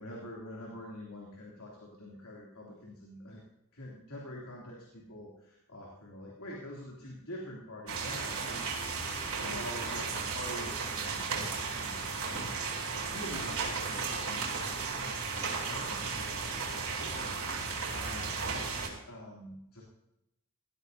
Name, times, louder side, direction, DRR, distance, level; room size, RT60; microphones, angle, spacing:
voice 1, 0.0-3.4 3.7-8.8 9.4-11.4 11.8-18.8 19.1-19.8, left 1 dB, 75° left, -3 dB, 3.1 m, -46 dB
sound 1, 7.9-18.9, right 4 dB, 80° right, 4.3 m, -35 dB
18.5 x 14.5 x 2.8 m, 0.86 s
head